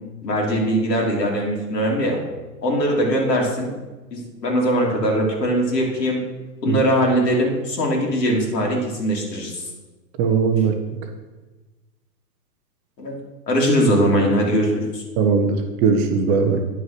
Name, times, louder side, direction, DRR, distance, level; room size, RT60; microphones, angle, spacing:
voice 1, 0.2-2.2 2.6-3.7 4.1-6.2 6.6-9.6 13.0-13.2 13.5-15.0, equal, 75° left, -2 dB, 2.9 m, -21 dB
voice 2, 10.2-10.7 15.2-16.6, right 5 dB, 15° right, 5 dB, 0.4 m, -19 dB
9.7 x 5.4 x 5.9 m, 1.2 s
hypercardioid pair, 120°, 49 cm